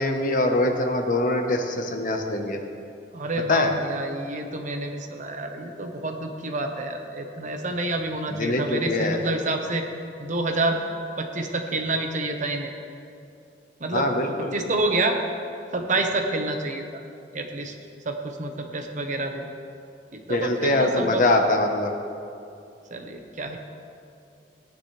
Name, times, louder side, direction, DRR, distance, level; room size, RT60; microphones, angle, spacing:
voice 1, 0.0-2.6 3.5-3.7 8.3-9.2 13.9-14.5 20.3-21.9, left 2 dB, 50° left, 4 dB, 1.1 m, -23 dB
voice 2, 3.1-9.8 10.2-10.8 11.2-12.7 13.8-14.1 14.5-15.2 15.7-17.0 17.3-17.7 18.0-19.5 20.1-21.2 22.9-23.6, right 2 dB, 45° right, 4 dB, 1.1 m, -28 dB
18.0 x 10.5 x 3.3 m, 2.6 s
head